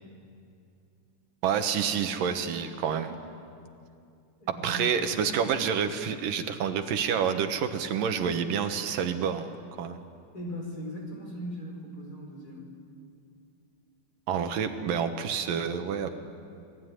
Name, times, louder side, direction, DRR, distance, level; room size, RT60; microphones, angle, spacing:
voice 1, 1.4-3.2 4.5-9.5 9.8-10.0 14.3-16.1, right 7 dB, 85° right, 7 dB, 3.1 m, -28 dB
voice 2, 4.4-4.8 10.3-12.7, equal, 25° left, -1 dB, 5.1 m, -39 dB
29.5 x 20.0 x 9.7 m, 2.5 s
omnidirectional pair, 3.8 m